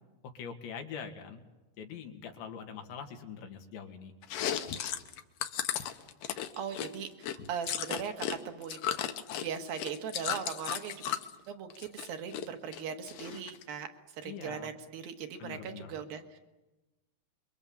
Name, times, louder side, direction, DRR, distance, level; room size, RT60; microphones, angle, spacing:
voice 1, 0.4-1.4 1.8-4.1 14.2-14.7 15.4-15.9, left 7 dB, 90° left, 5 dB, 4.2 m, -43 dB
Chewing mastication, 4.2-8.4 8.6-11.3 11.7-12.5 12.7-13.6, left 10 dB, 70° left, 2.2 m, -35 dB
voice 2, 6.3-8.9 9.4-11.0 11.5-13.9 14.2-16.4, right 7 dB, 65° right, 6 dB, 3.1 m, -39 dB
27.0 x 23.5 x 7.2 m, 1.1 s
omnidirectional pair, 5.0 m